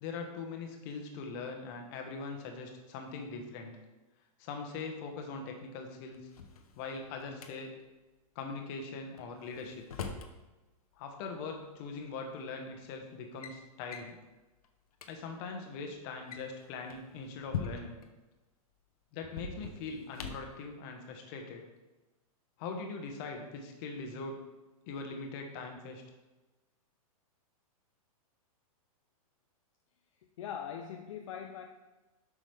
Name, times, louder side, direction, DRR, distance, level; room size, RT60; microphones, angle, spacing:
voice 1, 0.0-3.8 4.4-6.2 6.8-7.7 8.3-10.0 11.0-14.2 15.1-18.0 19.1-21.6 22.6-24.4 24.9-26.0, left 4 dB, 35° left, 3 dB, 1.2 m, -41 dB
Drawer open or close, 6.1-7.5 9.2-10.3 11.6-11.7 12.5-12.8 13.1-13.6 13.9-14.2 14.6-14.7 14.9-15.1 16.1-18.1 19.2-20.6, left 6 dB, 75° left, 1.0 m, -42 dB
voice 2, 30.4-31.7, left 8 dB, 55° left, 4 dB, 0.6 m, -41 dB
7.4 x 6.2 x 3.5 m, 1.1 s
hypercardioid pair, 155°, 19 cm